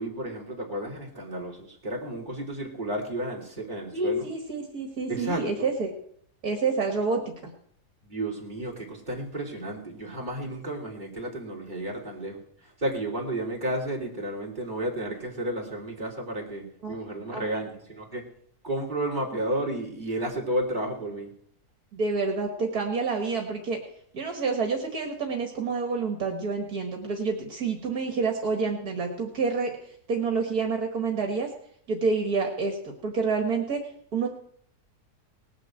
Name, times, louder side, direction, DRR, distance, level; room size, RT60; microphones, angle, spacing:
voice 1, 0.0-4.3 5.1-5.7 8.0-18.2 18.6-21.3, right 1 dB, 30° right, -2 dB, 3.6 m, -32 dB
voice 2, 3.9-5.9 6.4-7.5 16.8-17.0 17.3-17.5 21.9-23.8 24.1-31.5 31.9-33.8 34.1-34.3, right 4 dB, 70° right, 3 dB, 2.2 m, -28 dB
19.0 x 7.5 x 7.8 m, 0.65 s
omnidirectional pair, 1.7 m